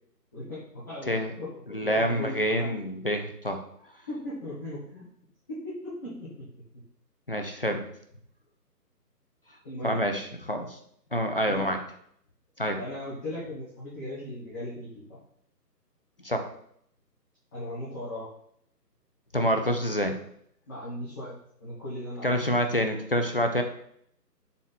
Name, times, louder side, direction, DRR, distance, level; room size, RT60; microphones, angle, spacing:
voice 1, 0.3-1.5 1.8-2.7 4.1-5.0 5.5-6.4 9.6-10.0 11.4-11.7 12.8-15.2 17.5-18.3 20.7-22.5, left 1 dB, 10° left, -12 dB, 1.1 m, -38 dB
voice 2, 1.7-3.6 7.3-7.8 9.8-10.8 11.1-11.8 12.6-12.8 16.2-16.5 19.3-20.2 22.2-23.6, equal, 35° left, 5 dB, 0.6 m, -27 dB
7.1 x 4.2 x 4.2 m, 0.68 s
figure-of-eight pair, 160°, 50 cm